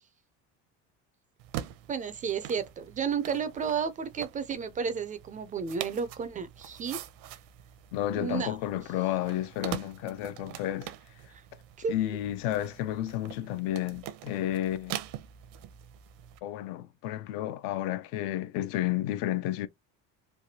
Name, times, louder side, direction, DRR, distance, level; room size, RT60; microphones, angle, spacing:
sound 1, 1.4-16.4, right 12 dB, 70° right, 0.6 m, -44 dB
voice 1, 1.9-7.0 8.1-8.6 11.8-11.9, right 6 dB, 25° right, 0.3 m, -32 dB
voice 2, 7.9-10.9 11.9-15.0 16.4-19.7, left 13 dB, 75° left, 0.5 m, -31 dB
3.3 x 2.2 x 2.7 m
cardioid pair, 135°, 35 cm